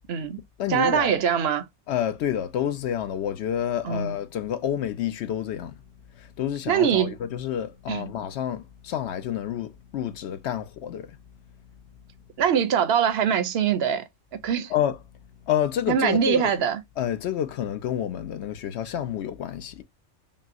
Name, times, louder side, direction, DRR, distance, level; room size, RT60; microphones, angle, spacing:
voice 1, 0.1-0.4 0.7-1.7 3.8-4.1 6.7-7.1 7.9-8.1 12.4-14.0 14.3-14.7 15.9-16.8, right 8 dB, 60° right, 0.7 m, -23 dB
voice 2, 0.6-1.2 1.9-5.8 6.1-11.2 14.7-15.0 15.4-16.5 17.0-19.8, left 10 dB, 65° left, 0.7 m, -29 dB
5.4 x 2.0 x 2.5 m
omnidirectional pair, 1.4 m